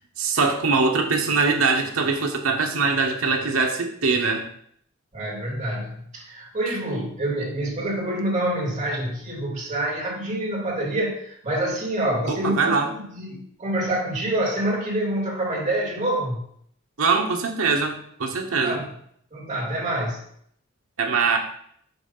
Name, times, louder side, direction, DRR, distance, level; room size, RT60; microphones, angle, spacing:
voice 1, 0.2-4.4 12.3-12.9 17.0-18.8 21.0-21.4, right 4 dB, 85° right, 3 dB, 1.0 m, -22 dB
voice 2, 5.1-16.4 18.6-18.8 19.3-20.2, right 1 dB, 35° right, -6 dB, 2.6 m, -27 dB
6.1 x 3.2 x 5.4 m, 0.66 s
head